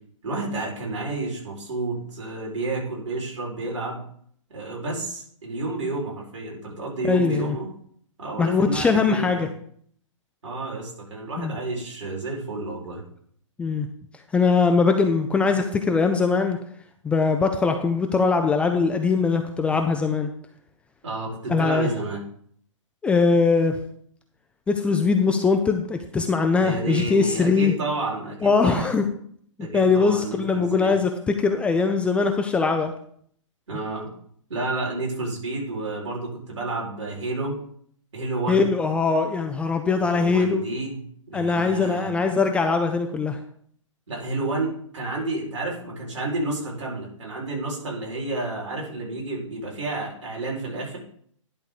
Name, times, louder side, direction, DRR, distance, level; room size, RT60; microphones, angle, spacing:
voice 1, 0.2-4.0 4.5-7.7 8.2-9.5 10.4-13.0 21.0-22.2 26.6-28.9 29.6-31.0 33.7-34.1 34.5-37.6 38.1-38.7 40.0-42.2 44.1-51.0, right 2 dB, 65° right, -3 dB, 4.6 m, -30 dB
voice 2, 7.0-7.6 8.4-9.5 11.4-11.5 13.6-13.9 14.3-16.6 17.0-20.3 21.5-21.9 23.0-23.8 24.7-27.7 28.4-29.1 29.7-32.9 38.5-40.6 41.3-43.4, left 4 dB, 5° left, 5 dB, 0.4 m, -21 dB
11.0 x 3.7 x 6.6 m, 0.62 s
figure-of-eight pair, 130°, 17 cm